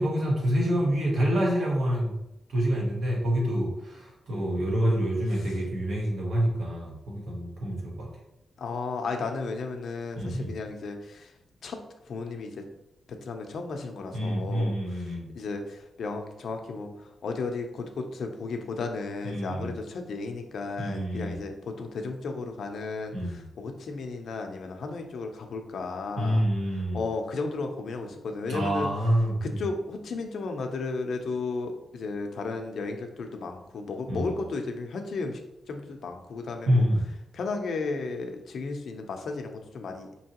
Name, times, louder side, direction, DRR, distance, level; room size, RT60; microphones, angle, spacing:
voice 1, 0.0-2.1 2.5-8.1 10.1-10.5 14.1-15.3 19.2-19.7 20.8-21.4 23.1-23.4 26.2-27.0 28.5-29.4 34.1-34.3 36.7-37.1, equal, 60° right, -3 dB, 1.2 m, -27 dB
voice 2, 8.6-11.3 11.6-12.7 13.1-16.9 17.2-26.5 26.7-28.9 29.4-35.4 35.7-36.8 37.3-40.1, left 3 dB, 60° left, 4 dB, 0.5 m, -34 dB
4.6 x 2.9 x 2.9 m, 0.87 s
wide cardioid pair, 165°, 0 cm